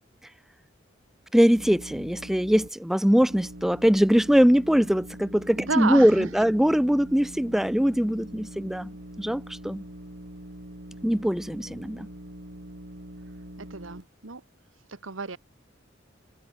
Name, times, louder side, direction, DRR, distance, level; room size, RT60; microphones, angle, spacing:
voice 1, 1.3-8.9 9.2-9.8 11.0-12.1, equal, ahead, 0.4 m, -22 dB
sound 1, 1.5-2.7 3.2-14.0, right 1 dB, 60° right, 2.7 m, -43 dB
voice 2, 5.6-6.3 13.6-14.4 14.9-15.4, right 4 dB, 90° right, 1.4 m, -31 dB
head